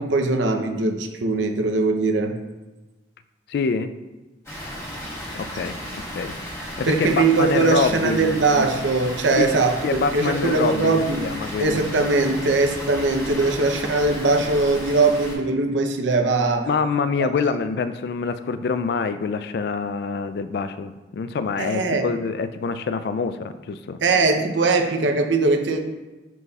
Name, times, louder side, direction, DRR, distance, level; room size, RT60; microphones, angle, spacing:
voice 1, 0.0-2.4 6.9-11.2 11.6-16.7 21.6-22.1 24.0-25.8, right 3 dB, 85° right, 5 dB, 0.7 m, -21 dB
voice 2, 3.5-3.9 5.4-8.4 9.4-11.8 16.7-24.0, left 4 dB, 60° left, 11 dB, 0.3 m, -26 dB
Water, 4.4-15.3, equal, 15° left, 1.3 m, -34 dB
10.5 x 4.0 x 2.3 m, 1.1 s
head